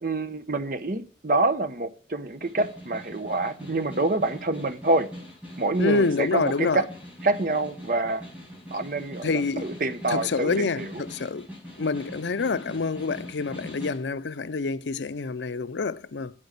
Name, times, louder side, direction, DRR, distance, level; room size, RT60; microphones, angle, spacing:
voice 1, 0.0-5.1 5.6-6.8 7.2-8.2 8.7-10.5 10.8-10.9, right 2 dB, 50° right, 0.9 m, -26 dB
Snare drum, 2.2-14.1, equal, 5° right, 5.2 m, -42 dB
voice 2, 5.8-6.9 9.2-9.7 10.1-11.5 11.8-16.3, left 4 dB, 90° left, 0.6 m, -27 dB
8.8 x 7.9 x 6.6 m
head